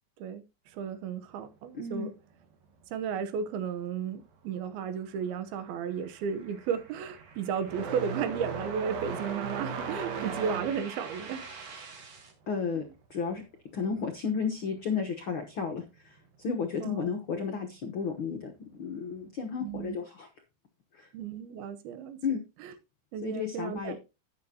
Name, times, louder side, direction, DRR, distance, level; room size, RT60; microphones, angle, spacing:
voice 1, 0.2-2.1 2.9-11.5 12.8-12.9 16.8-17.1 19.6-20.0 21.1-22.2 22.6-22.7 23.1-24.0, right 7 dB, 90° right, 2.9 m, -34 dB
voice 2, 1.7-2.1 12.5-12.8 13.1-13.4 13.7-18.5 18.8-20.3 20.9-21.1 22.2-22.4 23.2-24.0, left 5 dB, 80° left, 1.1 m, -33 dB
sound 1, 4.5-12.3, right 5 dB, 45° right, 3.3 m, -49 dB
sound 2, 5.1-5.4 5.7-14.0 14.3-15.4 16.4-16.5 17.3-17.4 19.1-19.2, right 5 dB, 75° right, 3.1 m, -38 dB
11.5 x 9.8 x 2.8 m
omnidirectional pair, 4.2 m